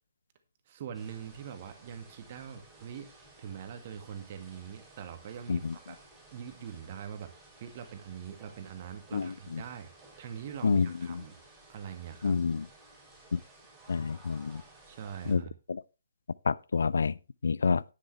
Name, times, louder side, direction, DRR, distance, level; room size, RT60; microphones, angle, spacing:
voice 1, 0.7-3.1 3.4-6.0 6.3-7.3 7.6-11.4 11.7-12.4 14.9-15.5, right 8 dB, 35° right, 1.9 m, -43 dB
sound 1, 0.9-15.3, right 2 dB, 10° right, 6.3 m, -56 dB
voice 2, 9.1-9.6 10.6-11.2 12.2-12.7 13.3-13.4 13.9-14.6 15.3-15.4 15.7-15.8 16.4-17.2 17.4-17.8, left 5 dB, 60° left, 0.5 m, -28 dB
10.5 x 10.0 x 3.3 m
figure-of-eight pair, 130°, 0 cm